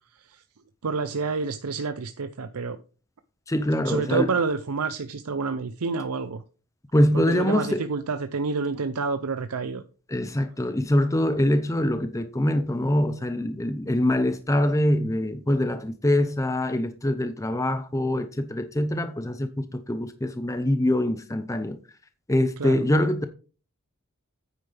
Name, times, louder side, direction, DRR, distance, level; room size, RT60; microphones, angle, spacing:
voice 1, 0.8-2.8 3.9-6.4 7.1-9.8 22.6-22.8, right 4 dB, 85° right, 0.6 m, -28 dB
voice 2, 3.5-4.3 6.9-7.8 10.1-21.8 22.3-23.3, left 1 dB, 15° left, 0.6 m, -24 dB
9.2 x 9.2 x 3.4 m
head